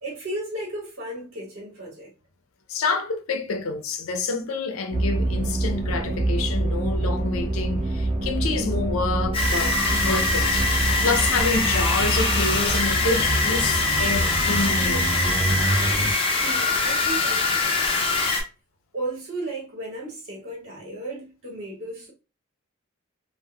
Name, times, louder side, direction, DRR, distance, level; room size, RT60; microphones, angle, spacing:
voice 1, 0.0-2.1 16.4-17.9 18.9-22.1, right 2 dB, 70° right, 1.0 m, -34 dB
voice 2, 2.7-10.7 11.0-15.2, left 3 dB, 80° left, 0.5 m, -28 dB
sound 1, 4.9-16.1, right 1 dB, 35° right, 0.4 m, -26 dB
sound 2, 9.3-18.4, left 3 dB, 25° left, 0.5 m, -23 dB
3.4 x 2.1 x 2.2 m
head